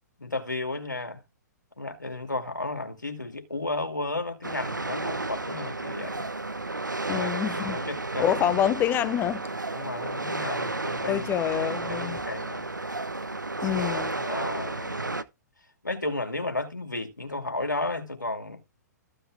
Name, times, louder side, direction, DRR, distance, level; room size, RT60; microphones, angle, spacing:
voice 1, 0.2-1.2 1.8-6.3 7.0-8.4 9.7-11.3 11.8-12.7 13.7-15.2 15.8-18.6, left 2 dB, 90° left, 2.5 m, -33 dB
sound 1, 4.4-15.2, right 2 dB, 90° right, 1.0 m, -32 dB
voice 2, 7.1-7.8 8.2-9.4 11.0-12.2 13.6-14.1, left 11 dB, 20° left, 0.7 m, -26 dB
14.5 x 5.4 x 3.6 m
figure-of-eight pair, 120°, 10 cm